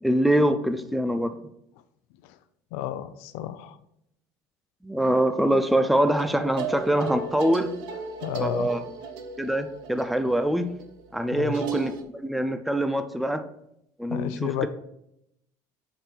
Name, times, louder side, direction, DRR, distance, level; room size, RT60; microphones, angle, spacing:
voice 1, 0.0-1.4 4.8-7.7 8.4-8.8 9.4-10.7 11.1-13.4 14.0-14.7, right 1 dB, ahead, 9 dB, 0.3 m, -24 dB
voice 2, 2.7-3.8 8.2-8.7 11.3-11.6 14.1-14.7, left 11 dB, 80° left, 12 dB, 0.5 m, -31 dB
sound 1, 6.0-12.0, right 6 dB, 60° right, 0.8 m, -36 dB
5.1 x 4.3 x 6.1 m, 0.78 s
cardioid pair, 170°, 8 cm